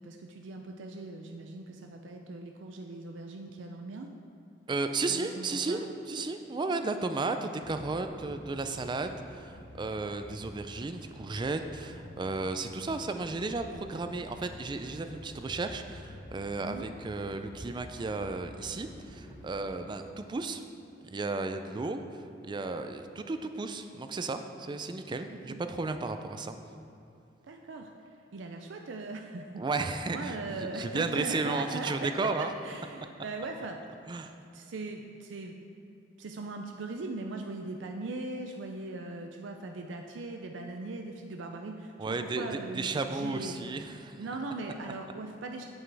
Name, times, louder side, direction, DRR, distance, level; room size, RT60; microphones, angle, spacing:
voice 1, 0.0-4.1 5.1-5.8 6.2-6.3 6.7-6.8 16.6-16.8 25.3-25.6 27.5-29.6 30.1-33.8 34.5-35.6 36.2-43.6 43.9-45.7, right 3 dB, 85° right, 3 dB, 0.5 m, -40 dB
voice 2, 4.7-20.6 21.0-26.6 29.6-32.5 34.1-34.3 42.0-44.2, right 3 dB, 25° right, 8 dB, 0.4 m, -34 dB
sound 1, 7.6-19.6, left 1 dB, 80° left, 1.5 m, -49 dB
8.2 x 7.7 x 3.4 m, 2.6 s
head